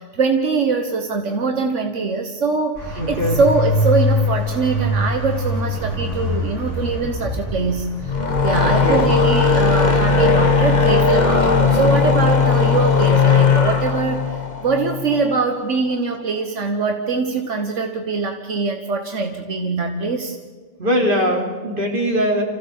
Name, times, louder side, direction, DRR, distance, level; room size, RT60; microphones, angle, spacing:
voice 1, 0.0-20.4, right 4 dB, 80° right, 4 dB, 1.6 m, -22 dB
sound 1, 2.7-8.7, left 1 dB, 85° left, 7.0 m, -23 dB
voice 2, 2.9-3.4 8.6-9.4 20.8-22.4, equal, 45° right, 0 dB, 3.3 m, -21 dB
sound 2, 8.0-15.4, left 5 dB, 35° left, 1.5 m, -17 dB
27.5 x 15.5 x 7.3 m, 1.5 s
omnidirectional pair, 1.2 m